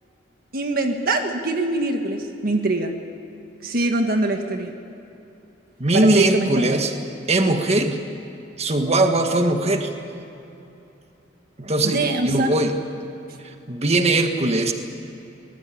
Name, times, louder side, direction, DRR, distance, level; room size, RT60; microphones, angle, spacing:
voice 1, 0.5-2.9 3.6-4.7 5.9-6.8 11.8-12.5, right 2 dB, 55° right, 5 dB, 1.6 m, -23 dB
voice 2, 5.8-6.9 7.3-8.0 8.6-9.9 11.6-12.7 13.7-14.7, right 2 dB, 35° right, 5 dB, 1.7 m, -20 dB
24.5 x 19.5 x 8.6 m, 2.9 s
head